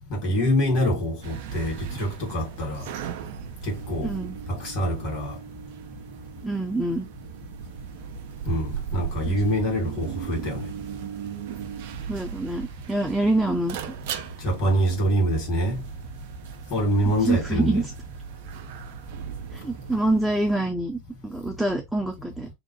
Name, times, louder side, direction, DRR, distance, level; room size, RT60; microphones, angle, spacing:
voice 1, 0.1-2.9 3.6-4.1 4.5-5.4 8.5-10.6 14.4-15.8 16.7-17.8, equal, 45° left, 1.6 m, -25 dB
sound 1, 1.2-20.6, right 8 dB, 55° right, 0.3 m, -37 dB
voice 2, 4.0-4.4 6.4-7.1 9.3-9.4 12.1-13.9 17.2-17.9 19.5-22.5, right 2 dB, ahead, 0.5 m, -26 dB
2.7 x 2.0 x 2.9 m
figure-of-eight pair, 85°, 0 cm